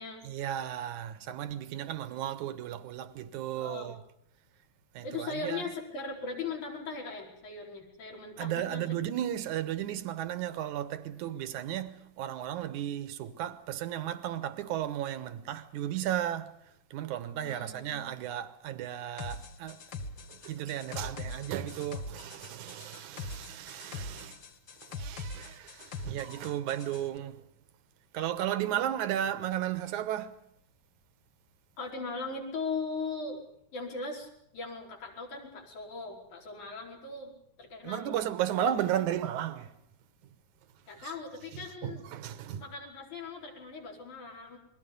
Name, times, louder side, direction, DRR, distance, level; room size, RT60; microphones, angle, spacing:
voice 1, 0.2-4.0 4.9-5.6 8.4-16.5 16.9-19.8 20.3-24.4 24.8-27.4 28.1-30.4 37.8-39.7 41.0-41.1 41.5-42.6, right 11 dB, 90° right, 2.6 m, -34 dB
voice 2, 3.6-3.9 5.0-8.8 17.4-18.2 31.8-33.4 33.7-34.3 34.5-37.3 37.6-38.6 40.9-42.0 42.6-44.6, left 4 dB, 80° left, 6.2 m, -39 dB
sound 1, 19.2-27.0, left 3 dB, 55° left, 1.4 m, -42 dB
28.0 x 22.0 x 5.4 m
omnidirectional pair, 3.4 m